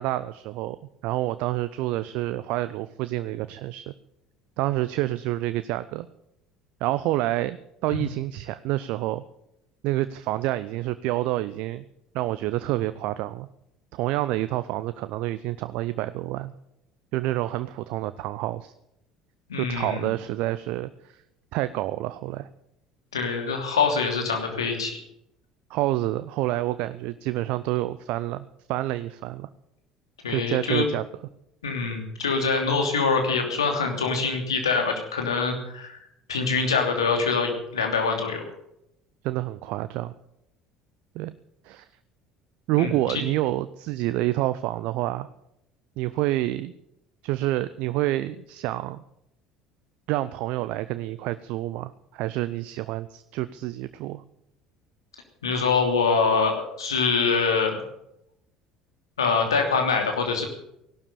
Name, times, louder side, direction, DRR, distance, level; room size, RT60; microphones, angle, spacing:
voice 1, 0.0-3.9 4.6-6.1 6.8-9.2 9.8-11.8 12.1-13.5 13.9-16.5 17.1-18.7 19.6-21.2 21.5-22.5 25.7-29.5 30.3-31.0 39.2-40.1 41.1-41.3 41.6-41.9 42.7-45.3 46.0-46.7 47.2-49.0 50.1-54.2, right 16 dB, 55° right, 14 dB, 0.6 m, -28 dB
voice 2, 19.5-20.1 23.1-24.9 30.2-30.9 31.6-36.0 36.3-38.4 42.8-43.2 55.4-57.8 59.2-60.5, left 4 dB, 75° left, 3 dB, 2.9 m, -24 dB
17.0 x 12.0 x 7.0 m, 0.81 s
figure-of-eight pair, 60°, 3 cm